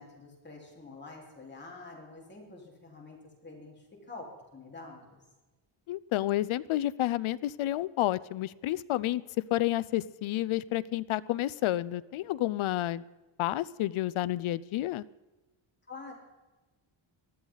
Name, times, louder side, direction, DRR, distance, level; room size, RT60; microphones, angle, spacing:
voice 1, 0.0-5.2 15.9-16.1, left 3 dB, 20° left, -2 dB, 4.2 m, -47 dB
voice 2, 5.9-13.0 13.4-15.0, left 15 dB, 75° left, 18 dB, 0.6 m, -30 dB
19.5 x 13.0 x 4.0 m, 1.2 s
wide cardioid pair, 140°, 49 cm